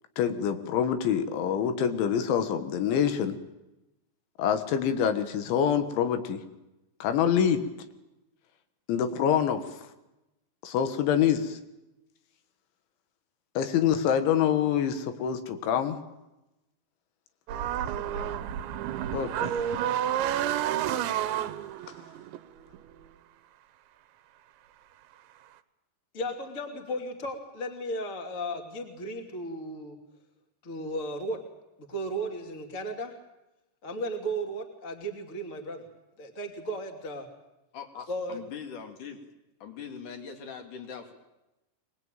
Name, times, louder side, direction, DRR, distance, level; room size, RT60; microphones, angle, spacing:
voice 1, 0.2-3.4 4.4-6.4 7.0-7.6 8.9-9.6 10.6-11.6 13.6-16.0 19.1-19.7, left 8 dB, 85° left, 9 dB, 3.8 m, -26 dB
sound 1, 17.5-23.1, right 10 dB, 80° right, 3.3 m, -30 dB
voice 2, 17.9-18.4 37.7-39.2 39.6-41.1, left 6 dB, 50° left, 5 dB, 3.4 m, -42 dB
voice 3, 26.1-30.0 30.6-31.4 31.9-33.1 33.8-35.8 36.2-37.3 38.1-38.4, right 1 dB, 25° left, 4 dB, 2.2 m, -35 dB
24.0 x 20.0 x 9.1 m, 0.97 s
omnidirectional pair, 5.2 m